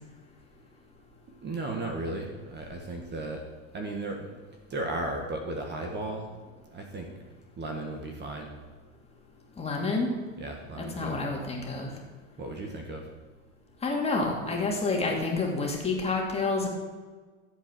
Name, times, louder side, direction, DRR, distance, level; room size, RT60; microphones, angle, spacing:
voice 1, 1.4-3.4 3.7-4.4 4.7-7.1 7.6-8.5 10.4-11.2 12.4-13.1, right 2 dB, 25° right, 2 dB, 1.8 m, -35 dB
voice 2, 9.6-10.1 10.8-11.9 13.8-16.7, left 3 dB, 15° left, -1 dB, 2.8 m, -28 dB
14.0 x 8.2 x 6.3 m, 1.4 s
supercardioid pair, 125°, 41 cm